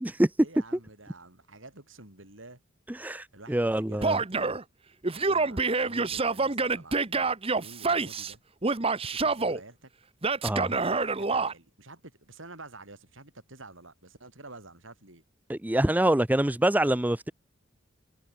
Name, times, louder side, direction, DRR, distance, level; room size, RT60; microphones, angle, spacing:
voice 1, 0.4-2.6 3.3-4.2 5.1-8.4 9.2-9.9 10.6-15.2, right 2 dB, 70° right, 7.2 m, -49 dB
voice 2, 2.9-4.2 10.4-10.7 15.5-17.3, right 1 dB, 10° right, 0.5 m, -25 dB
Male speech man speaking / Yell, 4.0-4.6 5.0-8.3 8.6-9.6 10.2-11.5, right 4 dB, 30° right, 1.1 m, -27 dB
head